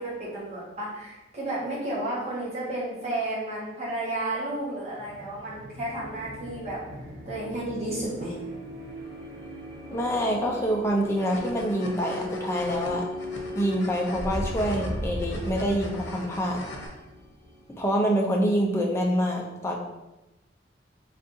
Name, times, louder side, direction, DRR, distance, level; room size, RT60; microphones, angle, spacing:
voice 1, 0.0-6.8 7.2-8.4, right 1 dB, 35° right, -8 dB, 1.4 m, -32 dB
sound 1, 4.9-18.4, left 1 dB, 80° right, 1.1 m, -37 dB
voice 2, 9.9-13.0 13.6-16.6 17.8-19.8, equal, 15° left, -1 dB, 0.5 m, -26 dB
sound 2, 10.9-16.9, left 1 dB, 85° left, 0.8 m, -42 dB
4.1 x 3.5 x 2.6 m, 0.99 s
head